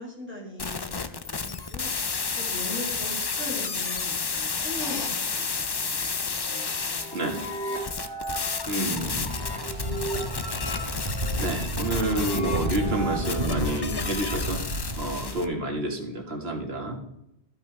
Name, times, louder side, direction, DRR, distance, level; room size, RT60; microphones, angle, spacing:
voice 1, 0.0-1.9 2.4-5.4 5.8-7.4 7.6-7.8 8.4-9.1 9.5-10.0, left 2 dB, 10° right, -3 dB, 2.8 m, -40 dB
sound 1, 0.6-15.5, left 5 dB, 35° left, 0.4 m, -32 dB
sound 2, 6.4-14.5, right 1 dB, 70° left, 1.9 m, -37 dB
voice 2, 8.7-9.4 11.4-14.6 15.0-17.0, right 1 dB, 75° right, 2 dB, 1.8 m, -29 dB
sound 3, 8.9-15.3, equal, 45° right, 1.6 m, -32 dB
13.0 x 5.6 x 4.5 m, 0.83 s
omnidirectional pair, 1.0 m